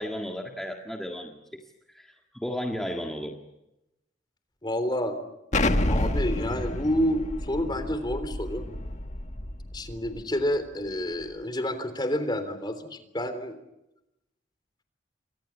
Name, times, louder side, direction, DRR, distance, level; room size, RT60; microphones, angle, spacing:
voice 1, 0.0-3.4, equal, ahead, 1 dB, 1.8 m, -34 dB
voice 2, 4.6-5.2 5.9-8.7 9.7-13.6, equal, 25° left, 9 dB, 3.5 m, -29 dB
Explosion, 5.5-10.2, left 1 dB, 40° left, 1.6 m, -29 dB
29.0 x 24.5 x 7.3 m, 0.91 s
head